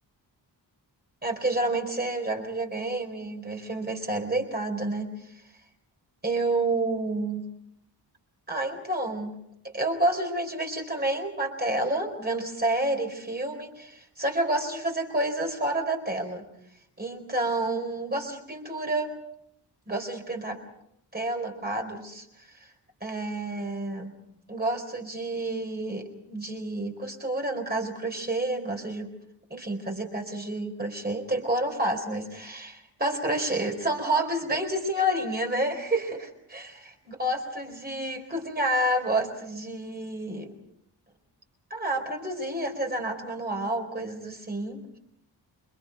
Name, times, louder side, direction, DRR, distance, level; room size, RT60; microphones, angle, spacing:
voice 1, 1.2-5.3 6.2-7.4 8.5-9.3 9.7-16.4 17.0-19.1 19.9-20.6 21.1-22.7 23.0-24.1 24.5-29.1 29.5-36.6 37.2-40.5 41.7-44.8, right 1 dB, 20° right, 2 dB, 4.2 m, -29 dB
29.0 x 24.5 x 5.3 m, 0.75 s
wide cardioid pair, 165°, 43 cm